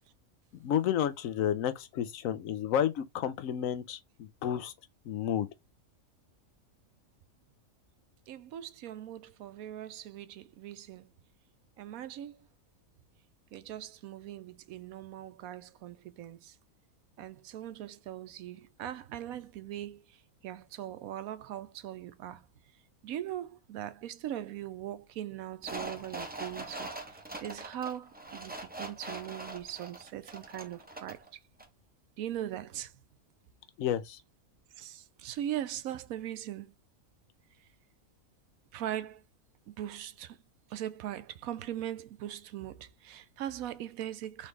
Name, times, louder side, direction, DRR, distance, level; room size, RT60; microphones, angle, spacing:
voice 1, 0.6-4.7 5.1-5.5 33.8-34.2, left 10 dB, 70° left, 1.0 m, -31 dB
voice 2, 8.3-11.1 11.8-12.4 13.5-16.6 17.2-20.2 20.4-22.5 23.0-31.2 32.2-32.9 34.8-36.7 38.7-39.2 39.7-40.4 40.7-44.5, right 11 dB, 80° right, 1.1 m, -40 dB
sound 1, 25.6-31.3 31.6-31.7, right 2 dB, 15° right, 0.4 m, -42 dB
4.1 x 3.3 x 3.2 m
omnidirectional pair, 1.5 m